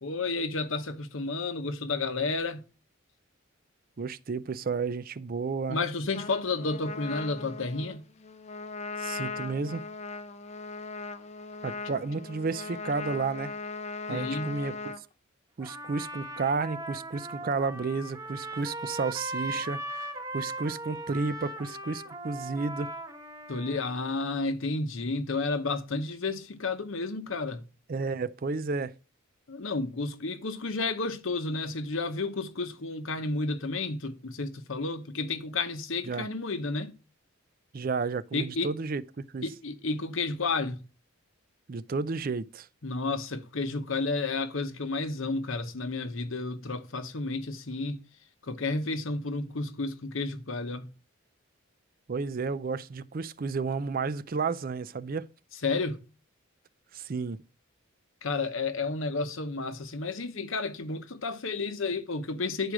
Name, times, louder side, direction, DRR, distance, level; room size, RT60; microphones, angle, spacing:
voice 1, 0.0-2.6 5.7-8.1 14.1-14.6 23.5-27.6 29.5-36.9 38.3-38.7 39.4-40.8 42.8-48.0 48.4-50.9 55.6-56.0 58.2-62.7, left 3 dB, 65° left, 0.9 m, -31 dB
voice 2, 4.0-5.8 9.0-9.8 11.6-13.5 14.1-14.9 15.6-22.9 27.9-28.9 36.1-36.3 37.7-39.5 41.7-42.7 52.1-55.3 56.9-57.4, right 4 dB, 40° right, 0.4 m, -32 dB
Trumpet, 6.1-15.0, left 4 dB, 30° left, 0.6 m, -39 dB
Trumpet 2, 15.6-24.1, right 1 dB, 15° right, 1.0 m, -38 dB
10.0 x 4.9 x 6.0 m
head